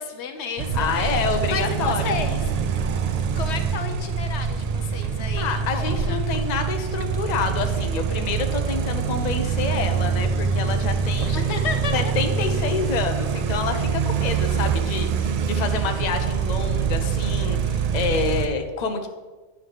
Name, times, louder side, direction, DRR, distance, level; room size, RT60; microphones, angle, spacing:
voice 1, 0.0-2.6 3.3-6.2 11.2-12.1, left 5 dB, 80° left, 7 dB, 1.0 m, -32 dB
sound 1, 0.6-18.5, right 6 dB, 65° right, 0.4 m, -25 dB
voice 2, 0.7-2.0 5.4-11.5 11.9-19.1, left 5 dB, 45° left, 6 dB, 0.7 m, -28 dB
9.3 x 3.6 x 6.4 m, 1.3 s
omnidirectional pair, 1.2 m